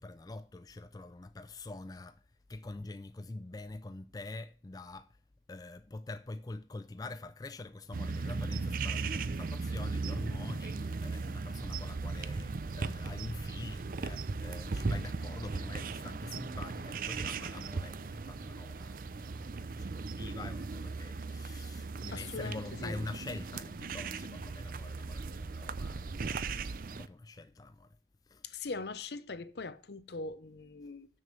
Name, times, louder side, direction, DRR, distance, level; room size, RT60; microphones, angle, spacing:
voice 1, 0.0-2.2 2.5-5.1 5.5-28.0 28.3-28.4, left 2 dB, 20° left, 0.3 m, -45 dB
sound 1, 7.9-27.1, right 4 dB, 50° right, 0.5 m, -37 dB
voice 2, 22.1-23.0 28.4-31.1, left 3 dB, 65° left, 0.7 m, -41 dB
7.0 x 6.4 x 7.0 m
head